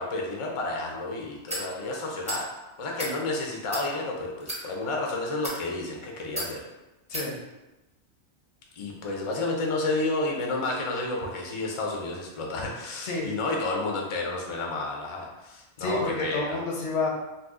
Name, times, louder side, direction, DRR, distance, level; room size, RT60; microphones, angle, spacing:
voice 1, 0.0-2.5 2.8-6.6 8.7-16.6, left 2 dB, 45° left, -1 dB, 0.4 m, -31 dB
sound 1, 1.5-1.7 2.2-2.4 2.9-3.1 3.7-3.9 4.4-4.6 5.3-5.6 6.4-6.5 7.1-7.3, equal, 10° right, 0.6 m, -33 dB
voice 2, 15.8-17.1, left 3 dB, 80° left, -1 dB, 1.0 m, -29 dB
2.8 x 2.3 x 3.5 m, 1.0 s
omnidirectional pair, 1.2 m